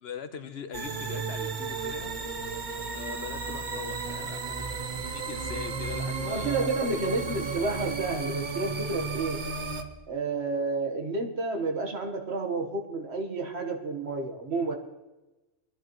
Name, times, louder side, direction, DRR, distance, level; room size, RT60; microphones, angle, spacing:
voice 1, 0.0-2.2 2.9-7.3, left 7 dB, 65° left, 9 dB, 1.1 m, -42 dB
sound 1, 0.7-9.8, right 4 dB, 45° right, 1.1 m, -34 dB
voice 2, 6.2-9.4 10.1-14.7, right 3 dB, 70° right, 3 dB, 1.6 m, -30 dB
22.5 x 11.0 x 3.1 m, 1.1 s
omnidirectional pair, 1.2 m